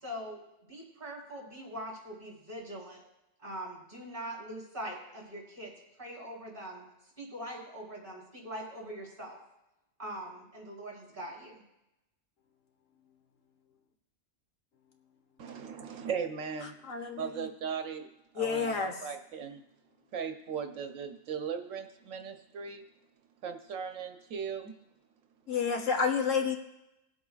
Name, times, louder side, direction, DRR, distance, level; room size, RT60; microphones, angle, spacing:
voice 1, 0.0-3.0 3.4-5.7 6.0-6.8 7.2-9.4 10.0-11.6, equal, 40° right, -4 dB, 4.0 m, -42 dB
voice 2, 15.4-16.7 17.2-18.1 18.3-19.6 20.1-22.8 23.4-24.7, right 6 dB, 85° right, 6 dB, 1.2 m, -38 dB
voice 3, 16.9-17.5 18.4-18.9 25.5-26.5, left 6 dB, 80° left, 5 dB, 1.4 m, -29 dB
20.0 x 8.0 x 2.4 m, 0.89 s
omnidirectional pair, 1.3 m